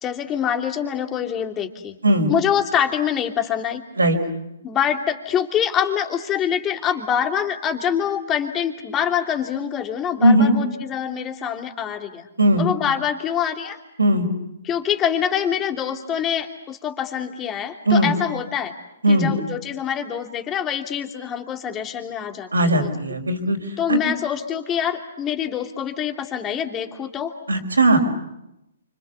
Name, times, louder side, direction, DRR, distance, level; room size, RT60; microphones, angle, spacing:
voice 1, 0.0-2.0 2.3-3.8 4.6-12.3 12.6-13.8 14.6-18.7 19.1-22.9 23.8-27.3, left 9 dB, 20° left, 4 dB, 2.9 m, -25 dB
voice 2, 10.2-10.5 12.4-12.6 14.0-14.3 17.9-18.1 19.0-19.3 22.5-23.6 23.9-24.0 27.5-28.0, right 1 dB, 85° right, 4 dB, 4.9 m, -17 dB
29.5 x 26.0 x 7.1 m, 0.86 s
figure-of-eight pair, 130°, 0 cm